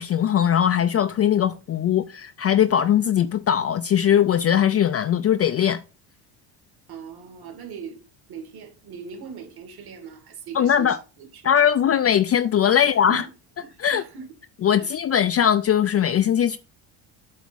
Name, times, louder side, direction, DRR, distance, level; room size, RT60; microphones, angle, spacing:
voice 1, 0.0-5.8 10.5-11.0 11.4-13.2 13.8-14.0 14.6-16.6, left 9 dB, 35° left, 0.5 m, -20 dB
voice 2, 6.9-11.5 12.7-13.3 13.6-14.3 14.8-15.0, right 6 dB, 55° right, 2.5 m, -40 dB
8.2 x 3.5 x 6.2 m
supercardioid pair, 100°, 45 cm